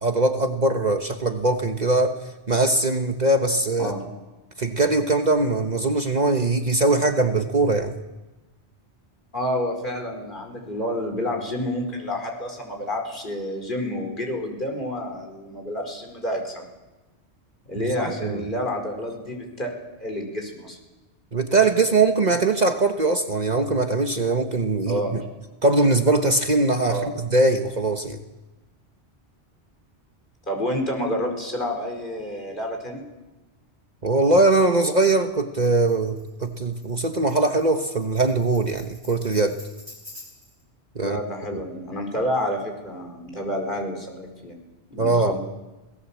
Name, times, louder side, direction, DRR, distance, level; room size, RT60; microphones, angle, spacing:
voice 1, 0.0-2.2 2.5-3.9 4.6-8.0 18.1-18.4 21.3-25.2 25.6-28.2 34.0-39.6 40.9-41.2 41.5-41.6 45.0-45.3, right 2 dB, 40° right, 6 dB, 1.2 m, -21 dB
voice 2, 9.3-16.7 17.7-19.7 20.0-20.8 24.9-25.2 26.9-27.1 30.5-33.0 41.0-44.6 44.9-45.4, equal, 45° left, 2 dB, 5.0 m, -29 dB
Tambourine, 35.6-40.6, left 2 dB, 70° right, 6.4 m, -47 dB
26.0 x 18.0 x 7.3 m, 1.1 s
omnidirectional pair, 1.1 m